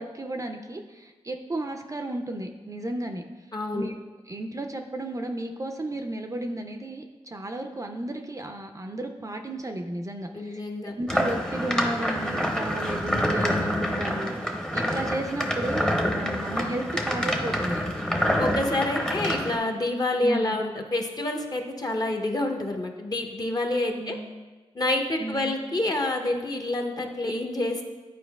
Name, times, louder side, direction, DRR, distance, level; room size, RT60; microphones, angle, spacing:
voice 1, 0.0-3.2 3.7-3.9 4.3-17.8 20.2-20.6 24.0-24.3 25.2-25.5, right 1 dB, 30° right, 4 dB, 0.5 m, -34 dB
voice 2, 3.5-3.9 10.3-11.0 18.4-24.2 24.7-27.8, left 1 dB, 35° left, 3 dB, 0.9 m, -28 dB
sound 1, 11.1-19.6, equal, 5° left, 0.8 m, -27 dB
10.0 x 4.4 x 2.3 m, 1.2 s
cardioid pair, 65°, 11 cm